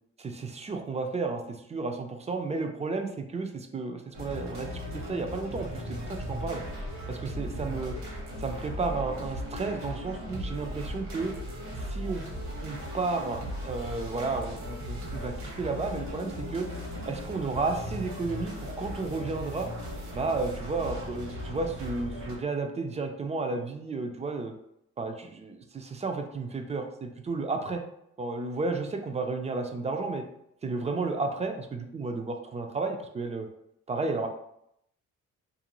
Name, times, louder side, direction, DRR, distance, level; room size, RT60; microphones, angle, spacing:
voice 1, 0.2-6.6 7.1-8.0 8.4-11.3 11.7-12.2 12.6-16.7 17.1-19.7 20.1-24.5 25.0-27.8 28.2-30.2 30.6-33.5 33.9-34.3, right 3 dB, 25° right, 5 dB, 0.3 m, -32 dB
sound 1, 4.1-22.4, equal, 65° right, 1.0 m, -37 dB
2.5 x 2.2 x 2.9 m, 0.76 s
cardioid pair, 90°, 30 cm